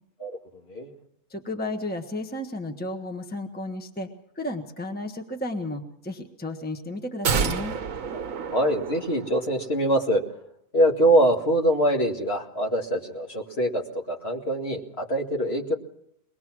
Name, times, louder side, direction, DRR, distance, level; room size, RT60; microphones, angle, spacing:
voice 1, 1.3-4.1 4.3-7.7, left 1 dB, 5° left, 5 dB, 1.2 m, -33 dB
sound 1, 7.2-9.6 9.9-10.0, right 6 dB, 65° right, 1.4 m, -29 dB
voice 2, 8.5-10.2 10.7-15.7, right 1 dB, 45° left, 0 dB, 2.3 m, -24 dB
23.0 x 20.0 x 6.1 m, 0.73 s
omnidirectional pair, 1.5 m